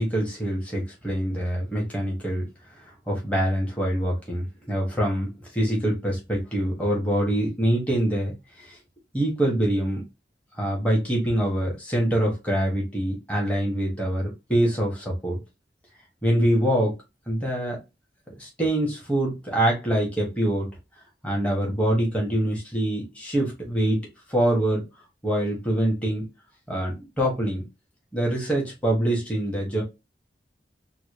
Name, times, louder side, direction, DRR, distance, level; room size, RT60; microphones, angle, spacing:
voice 1, 0.0-2.5 3.1-8.3 8.7-8.8 9.1-10.0 10.6-15.4 16.2-16.9 17.3-17.8 18.4-20.7 21.2-24.9 25.2-26.3 26.7-27.7 28.1-29.8, right 1 dB, 10° left, 1.2 m, -25 dB
3.8 x 2.2 x 3.2 m
head